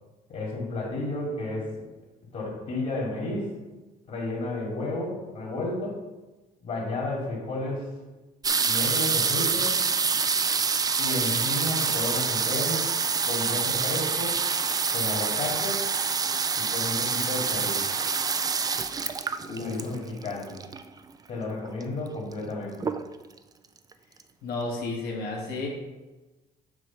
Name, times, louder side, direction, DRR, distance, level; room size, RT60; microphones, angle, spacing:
voice 1, 0.3-1.9 2.3-3.5 4.1-6.0 6.6-7.9 8.6-9.8 11.0-12.9 13.2-14.4 14.9-15.8 16.6-17.8 19.5-20.5 21.3-22.9, left 2 dB, 45° left, -3 dB, 2.4 m, -32 dB
sound 1, 8.4-21.0 21.8-21.9 22.1-22.5 22.8-23.4 23.9-24.0 24.2-24.3, right 5 dB, 20° right, 0.4 m, -26 dB
voice 2, 19.4-19.8 24.4-25.7, left 3 dB, 65° left, -1 dB, 1.9 m, -32 dB
7.4 x 3.2 x 5.7 m, 1.1 s
cardioid pair, 110°, 17 cm